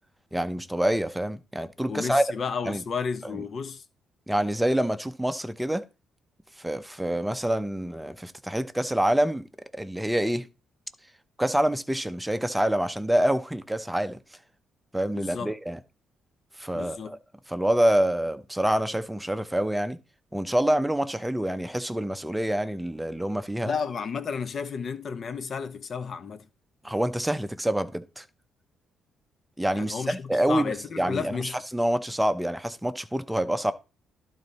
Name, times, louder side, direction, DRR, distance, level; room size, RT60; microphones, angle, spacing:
voice 1, 0.3-2.2 2.7-2.8 4.3-5.8 6.6-9.5 9.7-10.5 11.4-14.2 14.9-15.8 16.6-17.2 17.5-20.0 20.3-23.7 26.8-28.2 29.6-31.4 31.7-33.7, right 1 dB, 5° right, 0.7 m, -26 dB
voice 2, 1.9-3.8 15.2-15.6 16.7-17.2 23.6-26.5 29.7-31.5, left 6 dB, 50° left, 0.9 m, -32 dB
12.0 x 4.0 x 4.2 m
cardioid pair, 90°, 0 cm